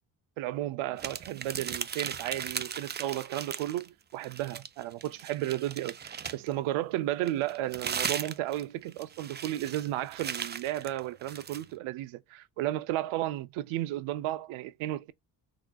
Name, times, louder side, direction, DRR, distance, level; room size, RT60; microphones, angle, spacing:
voice 1, 0.4-15.1, right 14 dB, 80° right, 0.6 m, -33 dB
sound 1, 1.0-3.9 4.2-6.5 7.3-11.6, right 7 dB, 25° right, 0.4 m, -37 dB
3.6 x 2.9 x 2.3 m
supercardioid pair, 65°, 48 cm